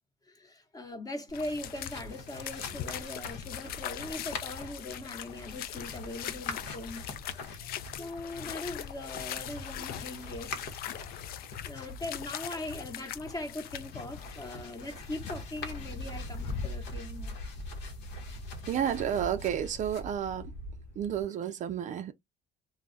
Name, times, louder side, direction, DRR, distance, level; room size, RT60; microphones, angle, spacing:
voice 1, 0.3-7.0 7.3-10.8 11.6-17.4, left 2 dB, 20° left, 0.9 m, -41 dB
sound 1, 1.3-21.2, left 2 dB, 85° left, 0.8 m, -43 dB
sound 2, 1.3-16.7, left 10 dB, 65° left, 0.4 m, -41 dB
voice 2, 18.7-20.5 21.0-22.1, right 9 dB, 45° right, 0.4 m, -31 dB
2.3 x 2.1 x 3.8 m
cardioid pair, 110°, 17 cm